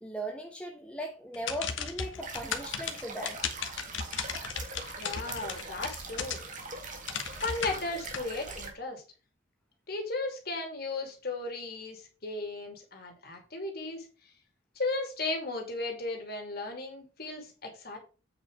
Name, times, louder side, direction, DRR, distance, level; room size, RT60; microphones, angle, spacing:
voice 1, 0.0-3.4, right 1 dB, 5° left, 0.9 m, -38 dB
sound 1, 1.3-6.6 7.0-8.2, left 6 dB, 70° left, 1.2 m, -36 dB
sound 2, 2.2-8.7, right 3 dB, 40° right, 1.8 m, -42 dB
voice 2, 5.0-6.5 7.4-9.0 9.9-14.1 14.8-18.0, left 2 dB, 50° left, 2.5 m, -35 dB
8.5 x 4.9 x 4.9 m
head